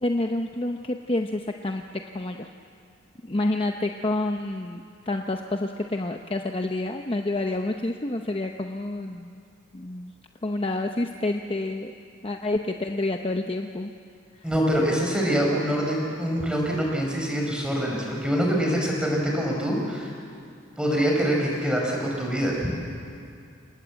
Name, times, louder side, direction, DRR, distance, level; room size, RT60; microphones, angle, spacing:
voice 1, 0.0-2.5 3.2-9.4 9.7-10.1 10.4-11.9 12.2-13.9 14.3-14.5, left 2 dB, 25° left, 4 dB, 0.7 m, -28 dB
voice 2, 14.4-20.1 20.8-22.7, equal, 5° right, -1 dB, 5.0 m, -25 dB
28.0 x 19.0 x 8.2 m, 2.4 s
head